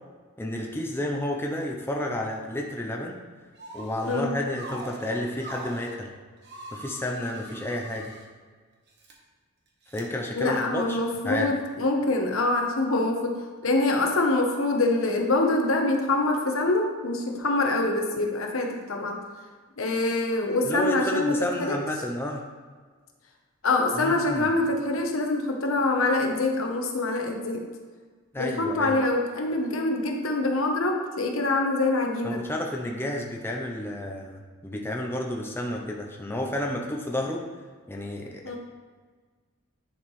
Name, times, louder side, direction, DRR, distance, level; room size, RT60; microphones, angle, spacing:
voice 1, 0.4-3.2 3.7-6.1 6.7-8.1 9.9-11.0 11.2-11.5 20.7-22.4 24.0-24.5 28.3-28.9 32.2-37.4 37.9-38.4, left 1 dB, 10° left, 0 dB, 0.6 m, -31 dB
sound 1, 3.6-4.2 4.5-5.9 6.4-8.3 8.9-9.1 9.9-10.0, right 1 dB, 55° right, 1.1 m, -42 dB
voice 2, 10.3-19.2 19.8-21.8 23.6-27.6 28.4-32.5 38.4-38.6, left 2 dB, 75° left, 2 dB, 1.0 m, -25 dB
10.0 x 4.7 x 3.1 m, 1.5 s
head